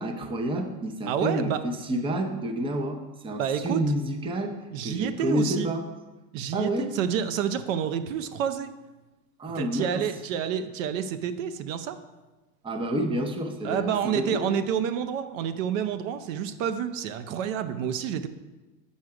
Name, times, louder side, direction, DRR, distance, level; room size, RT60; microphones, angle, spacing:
voice 1, 0.0-4.6 4.8-5.8 6.5-6.9 9.4-10.0 12.6-14.5, right 1 dB, 15° right, 4 dB, 0.6 m, -29 dB
voice 2, 1.1-1.6 3.3-3.8 4.7-5.7 6.3-8.7 9.5-12.0 13.6-18.3, right 8 dB, 85° right, 10 dB, 0.7 m, -29 dB
6.4 x 5.6 x 4.8 m, 1.1 s
supercardioid pair, 135°, 38 cm